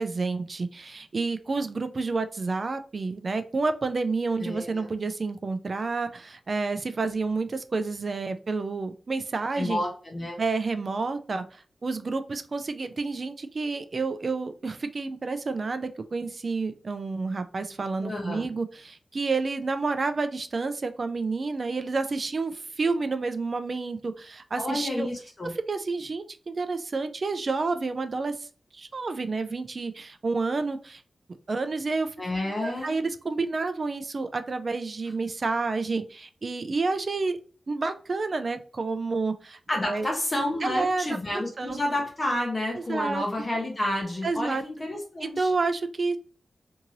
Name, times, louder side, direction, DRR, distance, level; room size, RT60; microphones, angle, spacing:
voice 1, 0.0-9.8 10.4-25.1 25.4-28.5 28.7-31.0 31.5-32.1 32.6-37.4 37.7-40.1 40.6-41.8 42.8-43.2 44.2-44.6 45.2-46.2, right 3 dB, 45° right, 9 dB, 0.3 m, -29 dB
voice 2, 4.4-4.9 9.5-10.4 18.0-18.5 24.6-25.5 32.2-32.9 39.7-45.5, left 1 dB, 30° left, -1 dB, 0.7 m, -30 dB
2.7 x 2.5 x 2.9 m, 0.39 s
wide cardioid pair, 140°, 0 cm